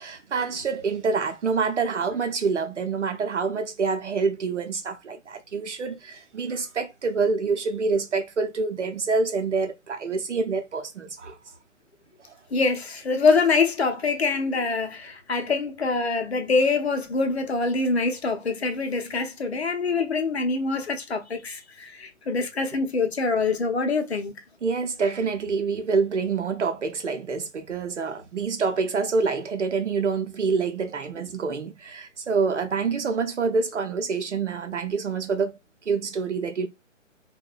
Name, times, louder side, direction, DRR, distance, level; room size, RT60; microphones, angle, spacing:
voice 1, 0.0-11.4 12.3-12.4 24.6-35.5 35.9-36.7, right 4 dB, 65° right, 0.6 m, -26 dB
voice 2, 12.5-24.3, left 4 dB, 55° left, 0.6 m, -24 dB
2.6 x 2.1 x 2.3 m
figure-of-eight pair, 140°, 38 cm